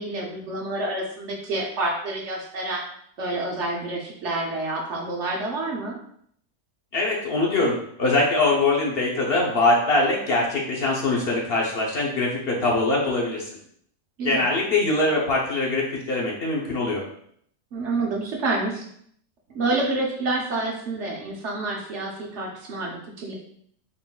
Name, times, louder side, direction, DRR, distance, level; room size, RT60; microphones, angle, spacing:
voice 1, 0.0-2.8 3.2-6.0 14.2-14.5 17.7-18.8 19.5-23.3, right 2 dB, 65° right, -2 dB, 1.1 m, -28 dB
voice 2, 6.9-13.5 14.2-17.0, left 2 dB, 50° left, -3 dB, 1.0 m, -23 dB
3.9 x 3.8 x 2.3 m, 0.65 s
omnidirectional pair, 1.4 m